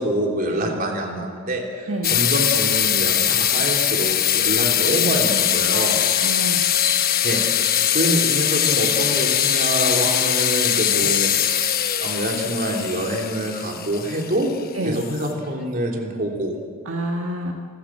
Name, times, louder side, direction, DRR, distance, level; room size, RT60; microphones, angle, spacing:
voice 1, 0.0-6.0 7.2-11.4 12.0-14.5 14.8-16.6, right 1 dB, 45° right, 0 dB, 3.4 m, -26 dB
sound 1, 2.0-15.4, left 10 dB, 45° left, 1.0 m, -21 dB
voice 2, 5.7-6.6 10.9-11.1 14.7-15.0 16.8-17.5, right 1 dB, 75° right, 1 dB, 1.7 m, -28 dB
27.5 x 14.0 x 7.5 m, 2.1 s
head